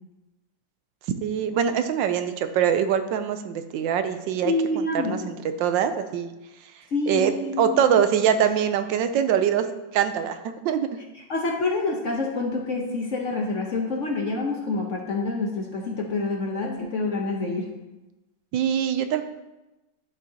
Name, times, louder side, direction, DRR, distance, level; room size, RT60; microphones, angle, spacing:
voice 1, 1.2-5.2 5.6-6.3 7.1-7.3 7.6-9.7 9.9-10.9 18.5-19.2, right 8 dB, 80° right, 9 dB, 1.3 m, -23 dB
voice 2, 4.4-5.3 6.9-8.0 11.3-17.7, left 3 dB, 50° left, 1 dB, 1.0 m, -27 dB
11.0 x 7.1 x 2.8 m, 1.0 s
omnidirectional pair, 2.1 m